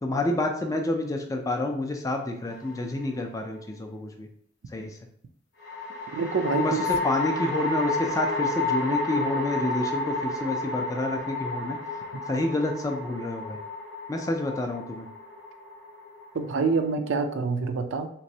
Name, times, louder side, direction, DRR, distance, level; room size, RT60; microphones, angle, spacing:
voice 1, 0.0-4.3 4.7-4.9 6.5-11.8 12.3-13.6 14.1-15.1, left 2 dB, 15° left, 4 dB, 0.3 m, -29 dB
sound 1, 2.5-3.2 5.6-16.9, left 2 dB, 50° left, 0.7 m, -31 dB
voice 2, 6.1-6.8 16.3-18.1, right 4 dB, 60° right, 7 dB, 0.4 m, -26 dB
3.4 x 3.0 x 2.7 m, 0.63 s
head